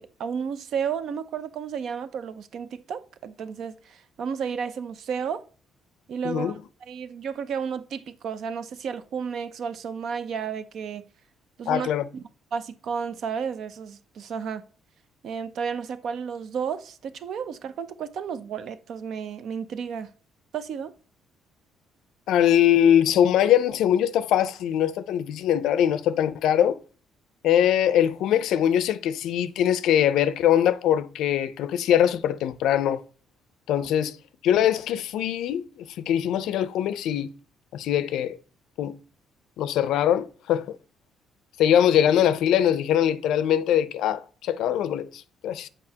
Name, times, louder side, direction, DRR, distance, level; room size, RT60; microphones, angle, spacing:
voice 1, 0.0-5.4 6.1-11.0 11.6-12.2 12.5-14.6 15.2-20.1 20.5-20.9, right 6 dB, 55° right, 0.5 m, -32 dB
voice 2, 6.2-6.5 11.7-12.0 22.3-26.8 27.4-33.0 33.7-34.2 34.4-37.3 37.7-38.4 38.8-39.0 39.6-40.8 41.6-45.7, left 10 dB, 75° left, 0.4 m, -22 dB
7.5 x 4.8 x 2.8 m
cardioid pair, 145°, 0 cm